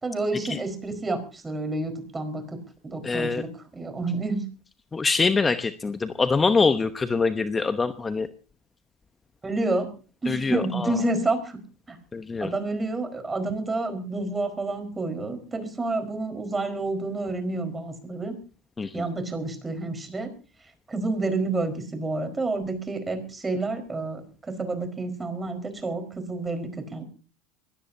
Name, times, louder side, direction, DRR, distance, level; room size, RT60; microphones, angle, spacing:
voice 1, 0.0-4.4 9.4-9.9 10.2-11.6 11.9-12.0 12.4-18.4 18.9-20.3 20.9-27.0, right 2 dB, 20° right, 7 dB, 4.6 m, -29 dB
voice 2, 3.0-3.4 4.9-8.3 10.3-11.0 12.1-12.5 18.8-19.1, left 4 dB, 20° left, 10 dB, 1.0 m, -24 dB
23.0 x 17.5 x 2.8 m, 0.36 s
hypercardioid pair, 85°, 0 cm